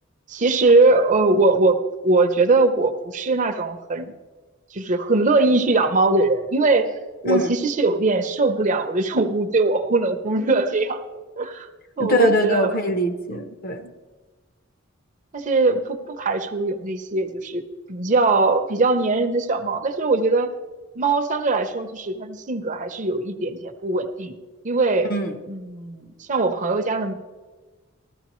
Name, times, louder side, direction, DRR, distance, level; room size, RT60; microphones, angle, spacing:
voice 1, 0.3-4.1 4.7-6.9 7.2-11.0 11.4-11.7 12.0-12.8 15.3-17.6 17.9-20.5 21.0-24.4 24.6-25.1 25.5-27.2, right 3 dB, 35° right, 8 dB, 0.6 m, -21 dB
voice 2, 12.0-13.9 25.1-25.4, equal, 45° left, 7 dB, 0.9 m, -22 dB
14.5 x 13.5 x 3.1 m, 1.3 s
head